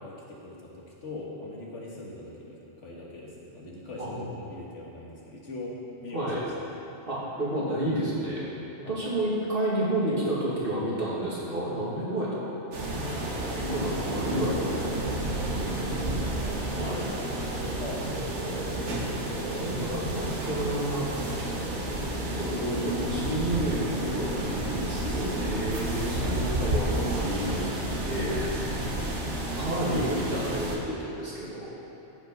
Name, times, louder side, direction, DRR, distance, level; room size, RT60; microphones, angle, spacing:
voice 1, 0.0-6.8 8.8-9.1 12.8-12.9 16.7-17.3 17.8-18.9 25.7-26.0, left 2 dB, 85° left, -4 dB, 2.0 m, -42 dB
voice 2, 4.0-4.3 6.1-6.4 7.1-8.5 8.9-12.5 13.6-14.9 16.7-17.0 19.5-21.2 21.9-22.1 22.3-28.3 29.6-31.7, right 1 dB, 50° right, -7 dB, 2.4 m, -30 dB
sound 1, 12.7-30.8, right 1 dB, 75° right, 1.5 m, -31 dB
13.5 x 5.4 x 5.4 m, 3.0 s
omnidirectional pair, 1.2 m